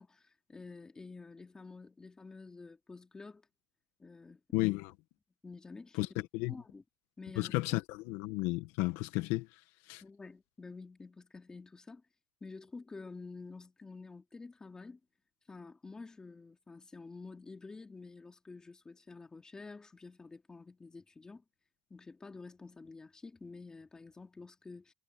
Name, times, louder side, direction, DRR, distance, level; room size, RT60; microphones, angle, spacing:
voice 1, 0.0-3.4 4.0-4.4 5.4-6.0 6.5-6.8 7.2-7.6 10.0-12.0 12.4-15.0 15.5-21.4 21.9-24.9, left 3 dB, 15° left, 3.1 m, -49 dB
voice 2, 4.5-4.9 6.0-6.1 6.3-6.5 7.4-9.5 9.9-10.0, left 19 dB, 65° left, 1.8 m, -33 dB
cardioid pair, 145°, 5 cm